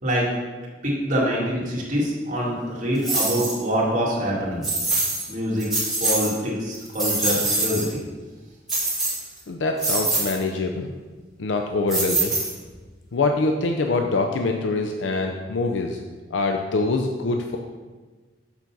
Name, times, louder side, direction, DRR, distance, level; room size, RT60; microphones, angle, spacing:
voice 1, 0.8-4.6 5.3-5.7 6.0-8.0, equal, 45° right, -5 dB, 2.0 m, -25 dB
sound 1, 3.0-3.6 4.6-5.3 5.6-6.3 6.7-7.9 8.7-9.4 9.8-10.4 11.9-12.8, right 2 dB, 5° right, 1.9 m, -24 dB
voice 2, 9.5-10.9 11.4-12.4 13.1-16.0 16.3-17.6, left 3 dB, 90° left, 3 dB, 0.5 m, -24 dB
7.1 x 3.9 x 5.9 m, 1.3 s
head